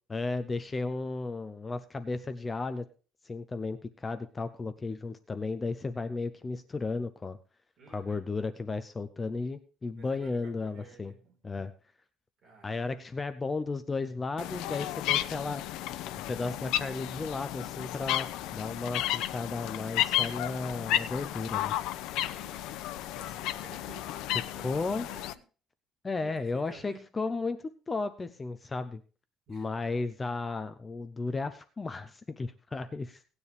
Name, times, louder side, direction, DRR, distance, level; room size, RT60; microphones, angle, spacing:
voice 1, 0.1-2.9 3.2-7.4 7.9-11.1 11.4-11.7 12.6-15.6 16.3-21.7 24.6-25.1 26.0-27.6 27.9-29.0 29.5-33.3, left 3 dB, 15° left, 10 dB, 0.6 m, -34 dB
voice 2, 7.8-8.2 9.9-11.4 12.4-13.2 22.3-22.8 23.1-25.4 26.2-27.1 29.5-29.7, right 5 dB, 40° right, 2 dB, 4.5 m, -54 dB
sound 1, 14.4-25.3, left 13 dB, 80° left, 0.7 m, -33 dB
17.5 x 9.7 x 3.3 m, 0.37 s
cardioid pair, 170°, 0 cm